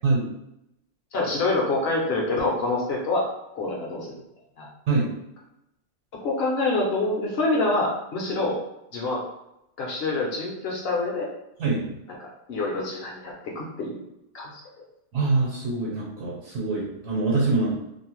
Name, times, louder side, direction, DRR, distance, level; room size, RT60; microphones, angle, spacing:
voice 1, 1.1-3.2 3.5-4.2 4.6-4.7 6.2-8.6 8.9-9.2 9.8-11.3 12.5-14.0 14.3-14.6, left 2 dB, 60° left, -2 dB, 0.6 m, -26 dB
voice 2, 15.1-17.7, right 3 dB, 70° right, -4 dB, 1.1 m, -24 dB
2.6 x 2.0 x 2.9 m, 0.86 s
omnidirectional pair, 1.5 m